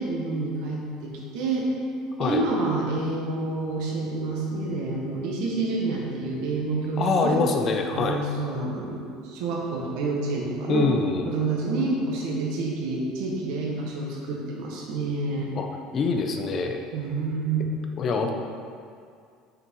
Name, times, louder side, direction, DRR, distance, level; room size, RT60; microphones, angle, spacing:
voice 1, 0.0-1.7 2.2-7.4 7.9-10.9 11.2-15.5 16.9-17.6, right 3 dB, 70° right, -2 dB, 1.6 m, -28 dB
voice 2, 7.0-8.2 10.7-11.4 15.5-15.7 15.9-16.8 18.0-18.3, left 4 dB, 45° left, 4 dB, 0.8 m, -24 dB
6.6 x 6.1 x 4.6 m, 2.3 s
supercardioid pair, 90°, 0 cm